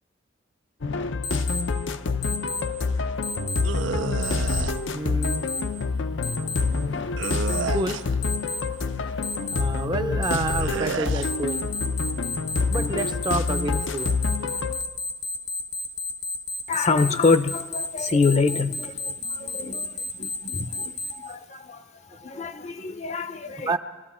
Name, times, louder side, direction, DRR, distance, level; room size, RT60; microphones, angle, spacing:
sound 1, 0.8-14.8, left 4 dB, 80° left, 0.7 m, -27 dB
Alarm, 1.2-1.6 2.2-2.6 3.2-3.6 4.2-4.6 5.2-5.6 6.2-6.6 7.2-7.6 8.2-8.6 9.2-9.6 10.2-10.6 11.2-21.1, left 3 dB, 60° left, 1.0 m, -30 dB
sound 2, 3.6-4.7 7.2-8.2 10.6-11.3, right 6 dB, 75° right, 0.4 m, -31 dB
voice 1, 4.9-5.4 7.7-8.0 9.5-11.7 12.7-14.2 19.2-19.7 22.3-22.4 23.7-23.8, right 2 dB, 25° right, 8 dB, 0.6 m, -29 dB
voice 2, 16.7-23.7, left 4 dB, 35° left, 11 dB, 0.6 m, -26 dB
24.0 x 13.0 x 4.3 m, 1.3 s
head